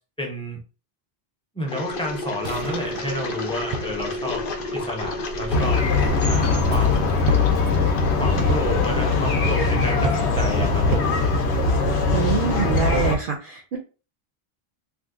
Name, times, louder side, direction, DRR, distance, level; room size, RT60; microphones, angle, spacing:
voice 1, 0.2-0.6 1.5-4.4 4.7-5.8 6.3-7.1 8.2-11.1, left 1 dB, 5° left, 1 dB, 0.7 m, -30 dB
Engine, 1.7-9.4, left 2 dB, 60° left, 0.8 m, -33 dB
sound 1, 1.9-11.1, right 3 dB, 90° right, 0.8 m, -33 dB
sound 2, 5.5-13.2, left 3 dB, 90° left, 1.0 m, -21 dB
voice 2, 12.1-13.8, right 6 dB, 65° right, 2 dB, 0.7 m, -25 dB
2.6 x 2.4 x 3.6 m, 0.34 s
omnidirectional pair, 1.1 m